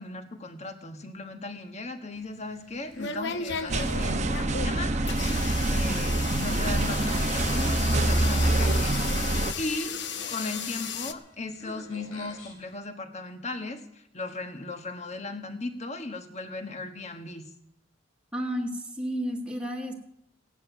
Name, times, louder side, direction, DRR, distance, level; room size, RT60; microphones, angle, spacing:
voice 1, 0.0-4.9 5.3-10.0 10.3-17.4, left 2 dB, 35° left, 7 dB, 1.3 m, -37 dB
sound 1, 2.1-11.1, left 6 dB, 55° left, 0.9 m, -35 dB
sound 2, 2.5-12.8, left 2 dB, 90° left, 3.9 m, -47 dB
sound 3, 3.7-9.5, right 2 dB, 35° right, 0.9 m, -25 dB
voice 2, 18.3-19.9, equal, 5° right, 1 dB, 1.7 m, -32 dB
16.5 x 10.0 x 7.0 m, 0.76 s
head